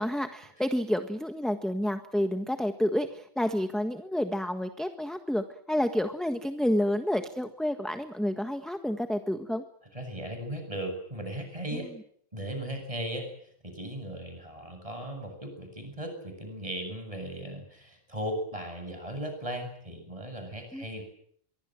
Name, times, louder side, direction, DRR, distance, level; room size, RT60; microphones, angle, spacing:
voice 1, 0.0-9.6 20.7-20.8, left 1 dB, ahead, 6 dB, 1.5 m, -29 dB
voice 2, 9.9-11.9 12.3-13.3 13.6-21.0, right 1 dB, 35° right, 6 dB, 8.1 m, -37 dB
25.0 x 24.0 x 7.7 m, 0.66 s
omnidirectional pair, 1.0 m